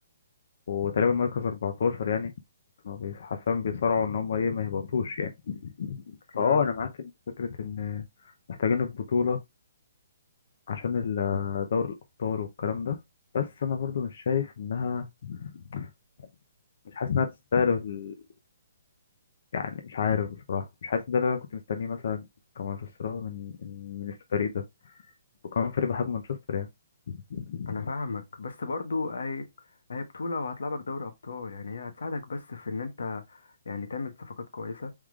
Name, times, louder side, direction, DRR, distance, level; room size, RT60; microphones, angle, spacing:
voice 1, 0.7-2.3 2.8-8.1 8.5-9.4 10.7-13.0 13.3-15.9 16.9-18.1 19.5-22.2 22.6-24.6 25.5-26.7 27.1-27.7, left 6 dB, 50° left, 0.6 m, -29 dB
voice 2, 6.3-6.7 27.7-29.5 29.9-34.9, left 3 dB, 90° left, 1.2 m, -34 dB
4.7 x 3.6 x 2.4 m
hypercardioid pair, 175°, 0 cm